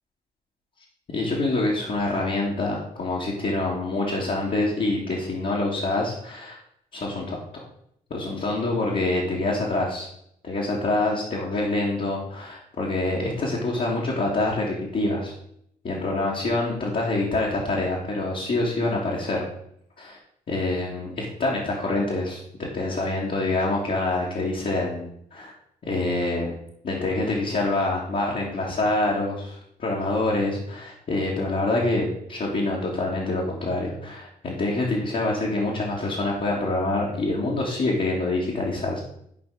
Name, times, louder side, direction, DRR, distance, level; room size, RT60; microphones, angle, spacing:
voice 1, 1.1-6.6 6.9-7.6 8.1-10.1 10.4-15.3 15.8-19.5 20.0-20.2 20.5-25.5 25.8-39.0, left 2 dB, 45° left, -5 dB, 2.1 m, -26 dB
12.0 x 5.3 x 3.8 m, 0.70 s
figure-of-eight pair, 40°, 21 cm